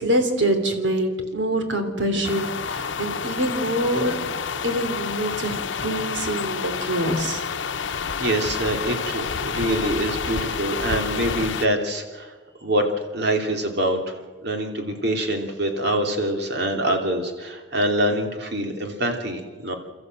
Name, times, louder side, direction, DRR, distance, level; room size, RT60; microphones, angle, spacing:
voice 1, 0.0-4.2 4.6-7.4, right 1 dB, 85° right, 6 dB, 3.0 m, -25 dB
sound 1, 2.2-11.7, left 6 dB, 90° left, 0.8 m, -29 dB
voice 2, 8.2-12.3 12.6-19.7, right 1 dB, 65° right, 3 dB, 2.9 m, -25 dB
28.0 x 14.0 x 7.7 m, 1.4 s
head